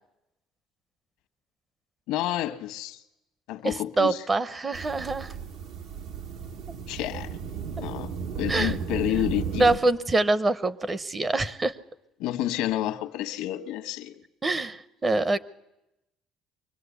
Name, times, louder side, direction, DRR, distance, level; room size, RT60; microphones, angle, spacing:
voice 1, 2.1-3.0 3.5-4.2 6.9-7.4 7.7-9.7 12.2-14.1, left 13 dB, 90° left, 1.1 m, -30 dB
voice 2, 3.6-5.3 8.5-8.8 9.6-11.8 14.4-15.4, right 2 dB, 20° right, 0.7 m, -25 dB
sound 1, 4.7-9.8, right 7 dB, 70° right, 1.2 m, -34 dB
24.0 x 18.0 x 8.3 m
cardioid pair, 130°, 0 cm